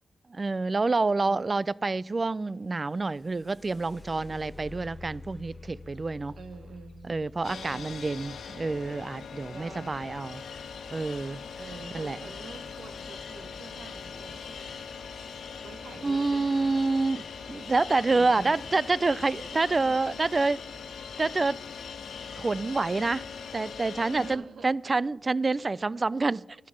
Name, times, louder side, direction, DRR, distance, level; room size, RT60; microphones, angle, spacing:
voice 1, 0.3-6.3 7.1-10.4 10.9-11.4 11.9-12.2 16.0-17.2 17.5-20.6 21.2-21.6 22.4-23.2 23.5-26.4, right 3 dB, 40° right, 0.3 m, -27 dB
voice 2, 0.9-1.5 6.3-8.0 9.5-10.1 11.6-14.8 15.6-16.8 18.1-18.6 19.5-20.0 24.0-24.7, right 5 dB, 75° right, 1.0 m, -47 dB
sound 1, 2.8-10.6 12.7-12.8 13.3-13.8 14.4-14.5 15.1-15.4, left 3 dB, 35° left, 0.7 m, -49 dB
sound 2, 7.4-24.4, left 6 dB, 80° left, 1.2 m, -41 dB
11.0 x 9.8 x 6.3 m
supercardioid pair, 50°, 0 cm